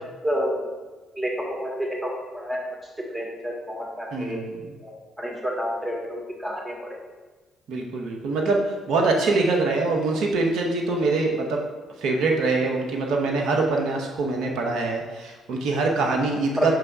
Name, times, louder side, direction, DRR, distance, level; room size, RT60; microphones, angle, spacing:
voice 1, 1.6-2.6 3.1-4.4 4.8-4.9 5.2-6.7, equal, 15° right, -1 dB, 1.9 m, -29 dB
voice 2, 4.1-4.7 7.7-11.6 12.0-16.7, right 3 dB, 65° right, 1 dB, 0.8 m, -24 dB
5.8 x 3.3 x 5.3 m, 1.3 s
hypercardioid pair, 50°, 0 cm